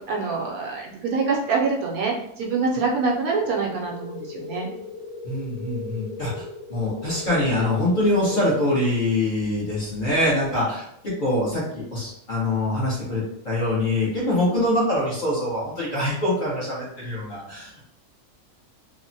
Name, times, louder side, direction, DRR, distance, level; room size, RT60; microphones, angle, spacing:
voice 1, 0.0-4.7, right 4 dB, 75° right, -1 dB, 1.0 m, -25 dB
sound 1, 3.4-8.4, left 3 dB, 70° left, 0.6 m, -37 dB
voice 2, 5.2-6.4 6.7-17.9, left 1 dB, 35° left, -8 dB, 1.0 m, -24 dB
3.2 x 2.1 x 2.6 m, 0.73 s
omnidirectional pair, 1.6 m